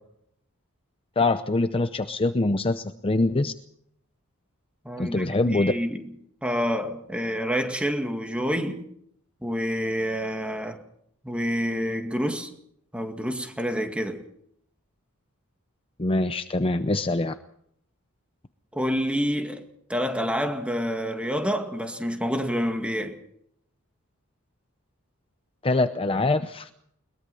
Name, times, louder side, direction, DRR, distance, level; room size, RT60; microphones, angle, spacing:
voice 1, 1.2-3.5 5.0-5.7 16.0-17.3 25.6-26.7, left 2 dB, 25° left, 0.7 m, -24 dB
voice 2, 4.8-6.1 6.4-8.8 9.4-10.8 11.2-12.5 12.9-14.2 18.7-23.2, equal, 5° right, 2.0 m, -28 dB
22.0 x 22.0 x 5.5 m
head